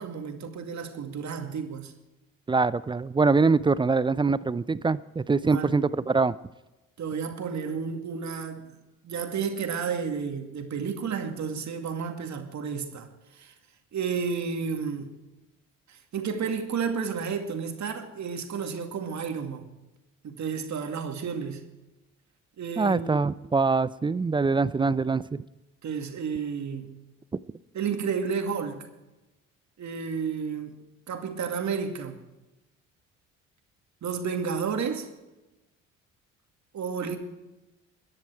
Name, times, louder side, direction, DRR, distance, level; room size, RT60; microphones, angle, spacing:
voice 1, 0.0-1.9 5.4-5.9 7.0-8.7 9.0-13.5 13.9-15.2 15.9-19.7 20.2-21.7 22.6-23.2 25.8-27.0 27.7-28.9 29.8-30.8 31.1-32.2 34.0-35.1 36.7-37.2, right 6 dB, 45° right, 2.3 m, -31 dB
voice 2, 2.5-6.3 22.8-25.2, right 4 dB, 15° right, 0.4 m, -23 dB
22.0 x 10.5 x 4.6 m
hypercardioid pair, 55°, 39 cm